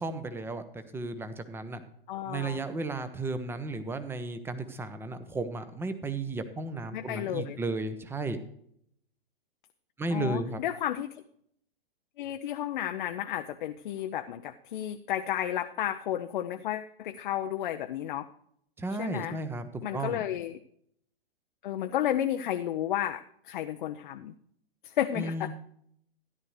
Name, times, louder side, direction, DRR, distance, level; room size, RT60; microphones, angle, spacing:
voice 1, 0.0-1.8 2.3-8.4 10.0-10.6 18.8-20.2 25.1-25.5, right 3 dB, 10° right, 11 dB, 0.8 m, -34 dB
voice 2, 2.1-2.6 6.9-7.6 10.1-11.2 12.2-18.3 19.0-19.4 19.8-20.6 21.6-24.3 24.8-25.5, left 11 dB, 55° left, 7 dB, 0.7 m, -32 dB
13.5 x 11.0 x 3.2 m, 0.69 s
hypercardioid pair, 120°, 29 cm